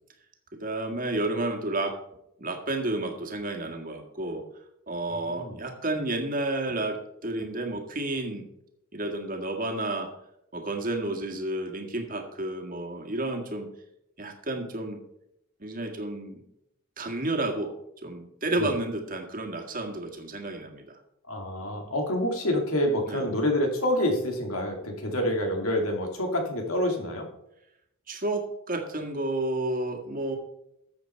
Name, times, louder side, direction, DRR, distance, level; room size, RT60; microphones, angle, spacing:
voice 1, 0.5-2.0 2.4-4.4 4.9-8.5 8.9-10.1 10.5-13.7 14.2-15.0 15.6-16.4 17.0-17.7 18.0-20.9 23.1-23.3 28.1-30.4, right 2 dB, 40° right, 3 dB, 1.7 m, -31 dB
voice 2, 5.1-5.6 18.6-18.7 21.3-27.3, left 1 dB, 85° left, 3 dB, 2.6 m, -27 dB
13.0 x 7.8 x 4.5 m, 0.80 s
head